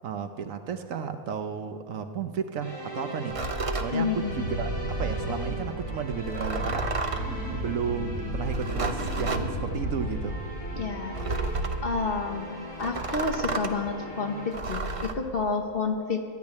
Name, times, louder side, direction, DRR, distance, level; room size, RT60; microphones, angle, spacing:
voice 1, 0.0-3.4 3.7-7.1 7.5-10.4, right 6 dB, 65° right, 8 dB, 1.1 m, -33 dB
sound 1, 2.6-14.5, right 1 dB, 20° left, 3.6 m, -40 dB
sound 2, 3.3-3.9 6.2-7.3 8.5-9.5 11.1-11.9 12.8-13.8 14.5-15.1, right 3 dB, 45° right, 0.4 m, -31 dB
voice 2, 3.9-4.5 10.7-11.2 11.8-16.2, left 4 dB, 45° left, 4 dB, 1.0 m, -30 dB
Wind, 4.2-11.0 11.3-11.8, right 1 dB, 65° left, 5.2 m, -33 dB
12.0 x 9.6 x 9.4 m, 2.4 s
omnidirectional pair, 1.6 m